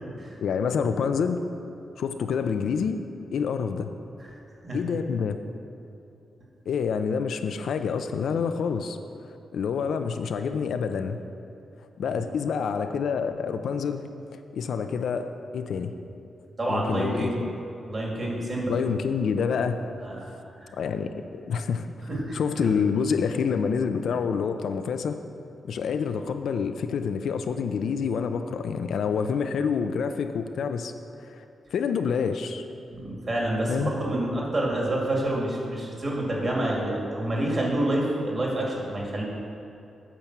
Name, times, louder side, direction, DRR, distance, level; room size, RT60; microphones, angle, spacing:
voice 1, 0.4-1.4 2.0-3.0 3.3-3.9 4.7-5.4 6.7-9.0 9.2-11.2 12.0-14.1 14.3-15.3 15.5-15.9 16.7-17.3 18.7-19.8 20.8-21.9 22.3-25.2 25.6-30.9 31.2-31.4 31.7-32.6 33.7-33.9, left 6 dB, 75° left, 8 dB, 0.5 m, -27 dB
voice 2, 16.6-17.4 17.9-18.7 20.0-20.3 20.6-20.7 22.1-22.8 32.9-39.2, right 1 dB, 30° right, -3 dB, 2.1 m, -28 dB
8.7 x 6.9 x 5.9 m, 2.7 s
wide cardioid pair, 140°, 0 cm